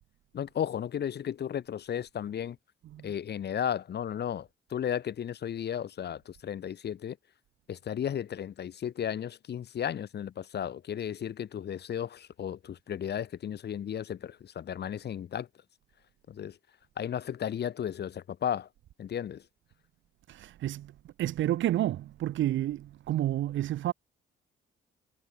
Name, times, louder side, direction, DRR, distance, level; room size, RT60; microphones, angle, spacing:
voice 1, 0.3-2.6 3.0-7.2 7.7-15.5 16.3-16.6 17.0-18.7 19.0-19.4, left 9 dB, 55° left, 1.7 m, -34 dB
voice 2, 20.3-20.9 21.2-23.9, right 13 dB, 75° right, 1.2 m, -30 dB
cardioid pair, 90°, 20 cm